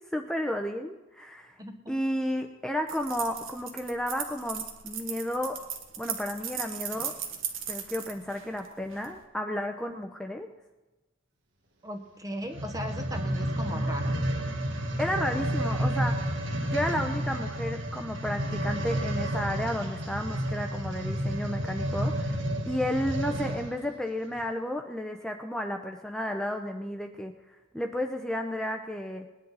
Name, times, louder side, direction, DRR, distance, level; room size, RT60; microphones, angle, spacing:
voice 1, 0.1-1.6 1.9-5.6 6.0-7.1 7.7-10.5 15.0-16.3 16.7-27.3 27.7-29.3, left 1 dB, 5° left, 4 dB, 0.7 m, -32 dB
voice 2, 1.6-2.0 11.8-14.1, equal, 20° right, 5 dB, 1.0 m, -37 dB
sound 1, 2.9-9.1, right 8 dB, 90° right, 1.6 m, -37 dB
sound 2, 12.4-23.8 24.4-24.5, right 1 dB, 65° right, 1.8 m, -30 dB
20.0 x 10.5 x 4.1 m, 1.1 s
head